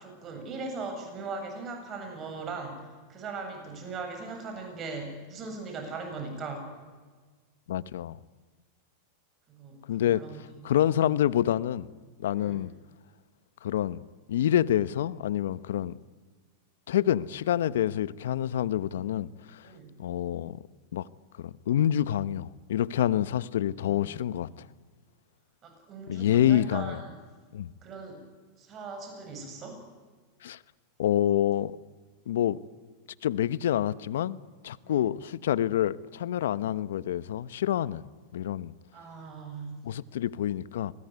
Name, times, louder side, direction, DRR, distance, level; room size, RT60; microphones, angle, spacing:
voice 1, 0.0-2.8 3.1-6.7 9.5-10.9 12.3-12.6 19.6-20.0 23.8-24.3 25.6-27.0 27.8-28.2 28.6-29.8 34.8-35.0 38.9-39.8, right 4 dB, 35° right, 8.0 m, -39 dB
voice 2, 7.7-8.2 9.9-10.2 10.6-11.9 12.2-12.7 13.6-14.0 14.3-16.0 16.9-19.7 20.0-20.6 20.9-21.1 21.4-24.5 26.1-27.0 27.5-27.7 30.4-30.6 31.0-31.8 32.3-32.6 33.2-34.4 34.6-38.0 38.3-38.7 39.8-40.9, left 11 dB, 75° left, 0.9 m, -27 dB
27.5 x 20.0 x 9.6 m
hypercardioid pair, 110°, 0 cm